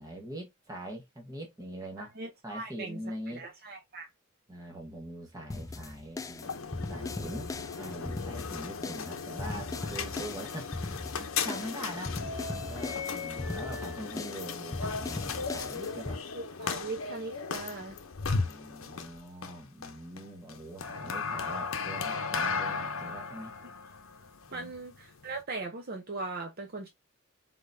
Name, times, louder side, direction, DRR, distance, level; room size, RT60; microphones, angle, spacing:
voice 1, 0.0-2.1 2.4-3.4 4.5-6.6 6.9-7.5 7.8-16.2 18.2-23.5 24.5-24.7, right 1 dB, 15° right, 1.4 m, -43 dB
voice 2, 2.0-3.0 3.3-4.1 16.3-18.0 24.5-26.9, right 3 dB, 45° right, 0.8 m, -39 dB
sound 1, 5.5-16.2, left 2 dB, 15° left, 0.3 m, -39 dB
sound 2, 6.3-25.4, left 5 dB, 70° left, 0.7 m, -36 dB
3.9 x 3.9 x 2.6 m
head